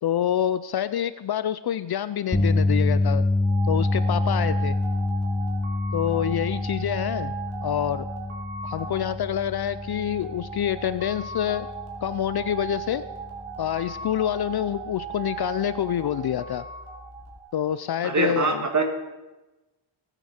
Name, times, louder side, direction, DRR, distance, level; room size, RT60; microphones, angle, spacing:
voice 1, 0.0-3.3 3.7-4.8 5.9-7.3 7.6-8.1 8.6-11.7 12.0-13.1 13.6-16.7 17.5-18.7, left 10 dB, 50° left, 14 dB, 0.5 m, -27 dB
sound 1, 2.3-14.6 14.9-15.2 17.4-17.5, left 2 dB, 10° left, 0.9 m, -27 dB
sound 2, 3.4-17.9, right 6 dB, 80° right, 3.2 m, -38 dB
voice 2, 18.0-18.8, right 3 dB, 35° right, 5 dB, 1.9 m, -23 dB
20.0 x 8.9 x 4.4 m, 1.1 s
cardioid pair, 110°, 49 cm